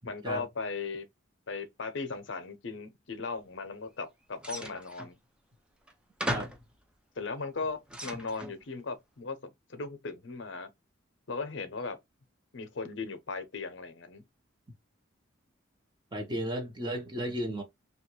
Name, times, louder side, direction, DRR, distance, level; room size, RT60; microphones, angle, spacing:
voice 1, 0.0-1.1 1.5-5.2 7.2-10.7 11.3-12.0 12.5-14.3, left 4 dB, 60° left, 0.7 m, -37 dB
sound 1, 4.4-5.1 5.9-6.0 6.2-6.7 7.4-8.6, equal, 5° right, 0.4 m, -36 dB
voice 2, 16.1-17.6, equal, 20° right, 0.8 m, -34 dB
3.1 x 2.3 x 3.0 m
head